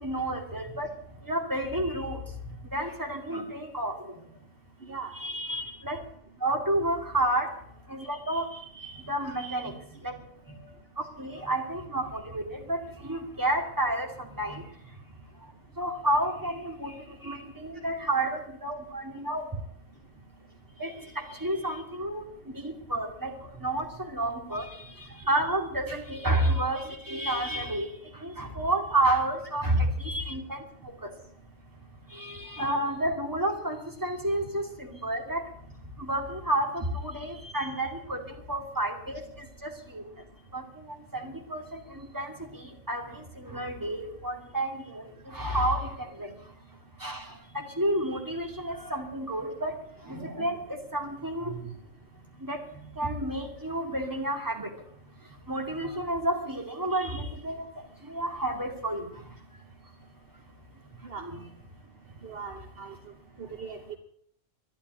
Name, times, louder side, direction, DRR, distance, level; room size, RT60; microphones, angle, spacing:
voice 1, 0.0-0.9 1.3-2.2 2.7-4.1 5.2-6.0 6.4-7.5 7.9-8.5 8.8-9.7 10.0-10.1 11.2-14.6 15.8-16.9 17.2-19.5 20.8-22.2 22.5-23.3 23.6-23.9 24.1-24.7 25.3-27.9 28.2-30.6 31.0-31.1 32.1-35.4 36.0-38.2 38.5-40.0 40.5-40.6 41.1-42.6 42.9-45.9 46.2-46.3 47.0-47.2 47.5-49.8 50.1-51.6 52.4-52.6 53.0-54.7 55.5-57.7 58.1-59.1 61.2-61.4, right 1 dB, 15° right, 2 dB, 2.5 m, -30 dB
voice 2, 4.8-5.1 32.1-32.2 61.0-61.2 62.2-62.9 63.4-64.0, right 5 dB, 50° right, 5 dB, 1.4 m, -40 dB
12.0 x 11.0 x 9.6 m, 0.66 s
omnidirectional pair, 1.3 m